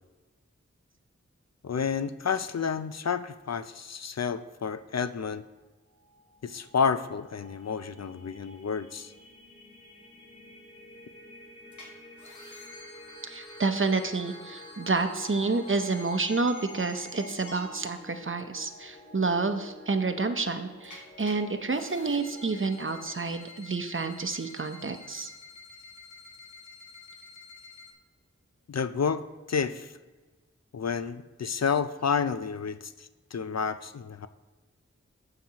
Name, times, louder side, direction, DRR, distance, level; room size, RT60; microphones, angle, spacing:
voice 1, 1.6-5.4 6.4-9.1 28.7-29.9 30.7-34.3, left 6 dB, 60° left, 12 dB, 0.5 m, -30 dB
sound 1, 5.8-23.3, left 1 dB, 25° left, 2.2 m, -50 dB
sound 2, 11.7-11.9 12.2-17.6 20.8-21.3 21.7-27.9, left 3 dB, 90° left, 1.5 m, -49 dB
voice 2, 13.2-25.3, right 3 dB, 45° right, 8 dB, 0.8 m, -29 dB
15.0 x 5.8 x 2.9 m, 1.2 s
wide cardioid pair, 45°, 29 cm